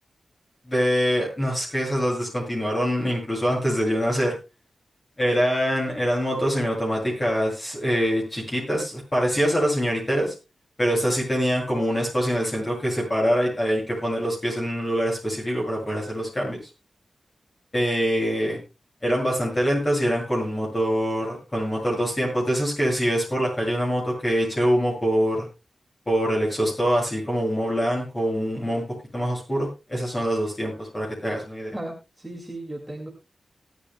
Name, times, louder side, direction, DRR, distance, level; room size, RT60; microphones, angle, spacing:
voice 1, 0.7-4.4 5.2-10.3 10.8-16.6 17.7-18.6 19.0-25.5 26.1-28.8 29.1-31.8, equal, 20° left, -2 dB, 7.9 m, -24 dB
voice 2, 31.7-33.1, right 1 dB, 5° right, 0 dB, 2.3 m, -35 dB
19.0 x 13.0 x 2.3 m, 0.28 s
wide cardioid pair, 175°, 0 cm